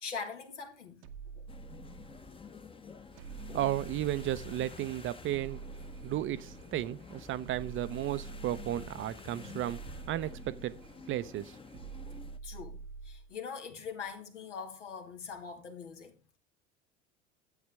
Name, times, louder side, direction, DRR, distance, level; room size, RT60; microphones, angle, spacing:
voice 1, 0.0-1.0 1.4-1.5 3.5-3.7 6.7-6.8 9.1-9.2 12.4-16.4, left 6 dB, 85° left, 1.7 m, -43 dB
sound 1, 1.0-2.3 3.2-4.8 5.3-6.7 7.4-9.1 9.6-11.0 11.7-13.3, right 5 dB, 70° right, 0.9 m, -46 dB
sound 2, 1.5-12.4, left 5 dB, 15° left, 0.8 m, -50 dB
voice 2, 3.4-5.6 6.0-9.8 10.1-10.7 11.1-11.6, right 13 dB, 35° right, 0.5 m, -34 dB
10.5 x 8.0 x 3.4 m
hypercardioid pair, 75°, 35 cm